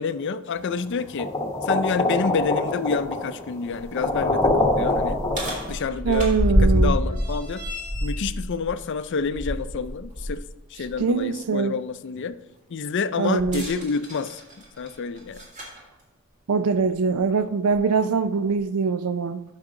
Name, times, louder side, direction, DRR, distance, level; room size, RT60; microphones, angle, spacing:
voice 1, 0.0-1.3 1.6-5.2 5.7-6.3 6.6-7.6 8.0-10.4 10.7-12.4 12.7-14.4 14.8-15.4, left 5 dB, 55° left, 0.4 m, -28 dB
sound 1, 1.2-5.7, left 2 dB, 15° left, 0.9 m, -24 dB
sound 2, 3.9-10.4 10.8-11.0 13.4-15.8 16.8-16.9 17.7-17.8, equal, 35° right, 2.0 m, -27 dB
voice 2, 6.0-7.0 11.0-11.7 13.2-13.7 16.5-19.4, right 5 dB, 80° right, 0.4 m, -23 dB
8.9 x 6.0 x 3.8 m
head